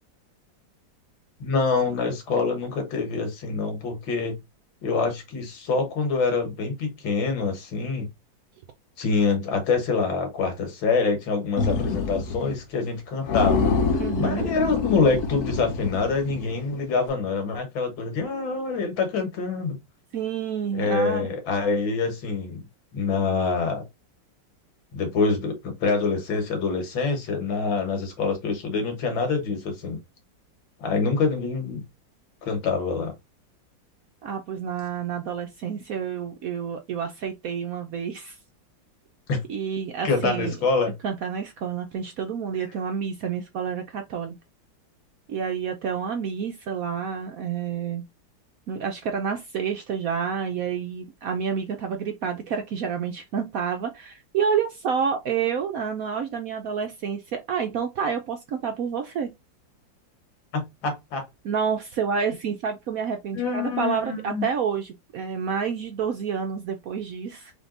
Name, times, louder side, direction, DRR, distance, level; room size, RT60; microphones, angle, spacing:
voice 1, 1.4-4.4 4.8-8.1 9.0-19.8 20.7-22.6 22.9-23.8 24.9-30.0 30.8-31.8 32.4-33.1 39.3-39.4 40.0-40.9 60.5-61.3 63.3-64.5, left 4 dB, 85° left, 2.1 m, -25 dB
sound 1, 11.6-12.6 12.8-13.0 13.3-16.6, left 4 dB, 60° left, 1.3 m, -26 dB
voice 2, 14.0-14.5 20.1-21.3 34.2-38.4 39.5-40.5 41.0-44.3 45.3-48.0 48.7-59.3 61.4-67.5, right 7 dB, 70° right, 0.8 m, -29 dB
3.7 x 3.5 x 3.8 m
omnidirectional pair, 2.1 m